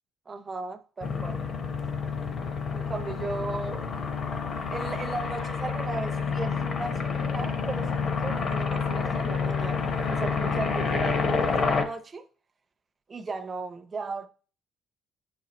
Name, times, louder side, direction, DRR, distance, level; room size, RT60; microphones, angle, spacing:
voice 1, 0.3-1.4 2.7-3.9 4.7-12.2 13.1-14.3, right 3 dB, 25° right, 0.5 m, -36 dB
sound 1, 1.0-11.8, left 5 dB, 40° left, 0.7 m, -28 dB
9.0 x 4.2 x 2.9 m
cardioid pair, 145°, 0 cm